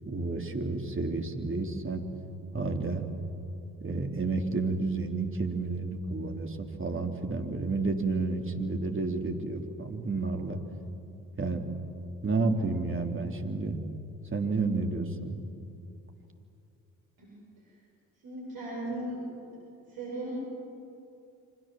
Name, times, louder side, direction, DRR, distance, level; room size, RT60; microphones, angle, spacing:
voice 1, 0.1-2.0 2.5-3.1 3.8-10.6 11.4-11.7 12.2-13.8 14.3-15.4, right 3 dB, 30° right, 3 dB, 3.5 m, -31 dB
voice 2, 18.2-19.2 19.9-20.3, right 1 dB, 60° right, -3 dB, 7.8 m, -37 dB
29.0 x 25.0 x 7.8 m, 2.6 s
hypercardioid pair, 45°, 41 cm